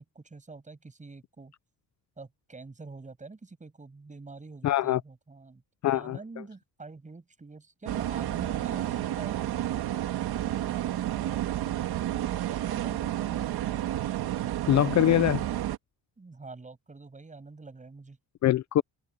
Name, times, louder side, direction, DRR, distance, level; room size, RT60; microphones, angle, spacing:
voice 1, 0.0-1.5 2.2-5.6 5.9-9.4 10.8-13.5 16.2-18.2, right 3 dB, 20° right, 7.7 m, -46 dB
voice 2, 4.6-5.0 5.8-6.2 14.7-15.4 18.4-18.8, left 12 dB, 50° left, 0.5 m, -23 dB
sound 1, 7.9-15.8, right 12 dB, 85° right, 2.0 m, -31 dB
cardioid pair, 140°, 37 cm